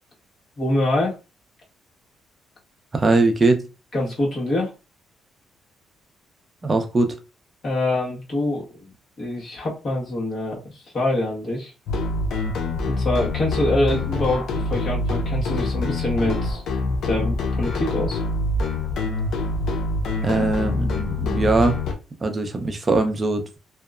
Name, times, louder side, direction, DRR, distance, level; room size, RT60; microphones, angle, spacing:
voice 1, 0.6-1.2 3.9-4.7 7.6-8.9 9.2-11.7 12.8-16.6 17.0-18.2, left 1 dB, 50° left, -4 dB, 1.3 m, -25 dB
voice 2, 2.9-3.6 6.6-7.2 20.2-21.8 22.2-23.4, right 3 dB, 30° right, 6 dB, 0.6 m, -21 dB
sound 1, 11.9-21.9, left 2 dB, 75° left, 0.6 m, -25 dB
2.8 x 2.1 x 2.4 m, 0.30 s
cardioid pair, 90°, 0 cm